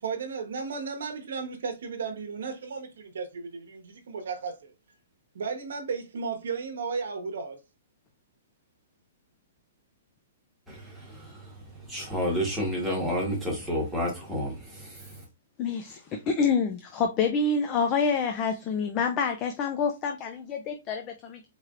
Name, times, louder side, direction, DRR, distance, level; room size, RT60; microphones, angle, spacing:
voice 1, 0.0-4.7 5.3-7.6, right 5 dB, 75° right, 1.0 m, -34 dB
voice 2, 10.7-11.5 11.9-15.2, equal, 5° right, 1.3 m, -30 dB
voice 3, 15.6-21.5, left 5 dB, 20° left, 0.4 m, -27 dB
4.4 x 3.2 x 2.4 m
hypercardioid pair, 170°, 0 cm